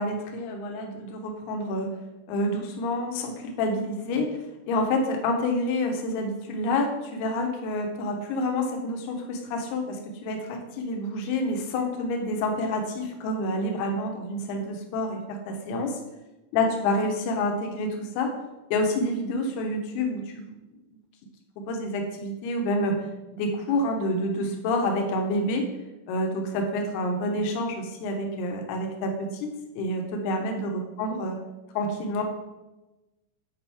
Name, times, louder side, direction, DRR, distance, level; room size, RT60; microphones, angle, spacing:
voice 1, 0.0-1.9 2.3-4.3 4.7-16.0 16.5-18.3 18.7-20.5 21.7-23.1 23.3-25.7 26.1-29.5 29.8-31.4 31.8-32.2, left 1 dB, 75° left, 3 dB, 2.5 m, -28 dB
8.6 x 5.0 x 3.4 m, 1.0 s
omnidirectional pair, 5.5 m